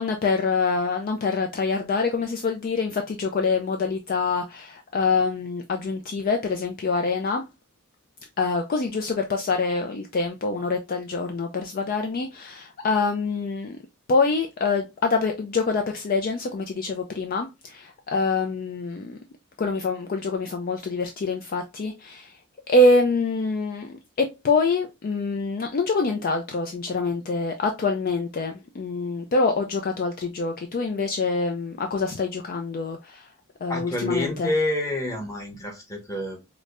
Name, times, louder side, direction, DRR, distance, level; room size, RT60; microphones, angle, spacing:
voice 1, 0.0-7.4 8.4-13.8 14.1-19.2 19.6-22.4 22.7-33.3 33.6-34.5, left 3 dB, 40° left, 0.4 m, -25 dB
voice 2, 33.7-36.4, left 1 dB, 15° left, 1.1 m, -28 dB
4.9 x 2.1 x 2.4 m
head